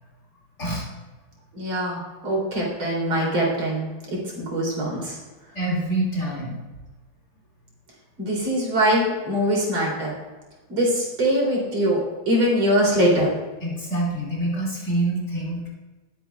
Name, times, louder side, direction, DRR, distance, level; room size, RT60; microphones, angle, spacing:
voice 1, 1.5-3.8 4.4-5.2 8.2-10.1 10.7-12.0 12.3-13.3, equal, 80° right, -4 dB, 3.8 m, -22 dB
voice 2, 5.5-6.6 13.6-15.7, right 1 dB, 35° left, -5 dB, 2.5 m, -26 dB
18.5 x 8.4 x 2.3 m, 1.2 s
omnidirectional pair, 2.2 m